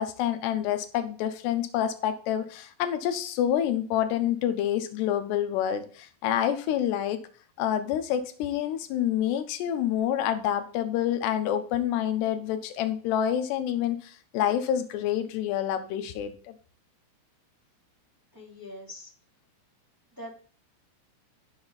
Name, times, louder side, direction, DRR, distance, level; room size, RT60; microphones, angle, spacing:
voice 1, 0.0-7.2 7.6-16.5, left 10 dB, 70° left, 8 dB, 2.7 m, -27 dB
voice 2, 18.3-19.1 20.1-20.3, left 1 dB, 5° right, -4 dB, 1.8 m, -43 dB
11.0 x 6.8 x 4.2 m, 0.42 s
omnidirectional pair, 5.8 m